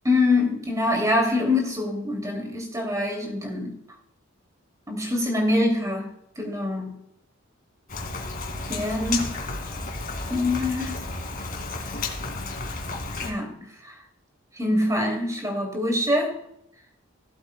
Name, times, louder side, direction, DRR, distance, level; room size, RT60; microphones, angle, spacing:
voice 1, 0.0-3.8 4.9-7.0 8.7-9.3 10.3-11.1 13.2-14.0 14.5-16.4, left 2 dB, 15° right, 2 dB, 2.8 m, -25 dB
Rain, 7.9-13.3, left 3 dB, 45° left, 2.3 m, -32 dB
17.5 x 7.9 x 2.3 m, 0.75 s
head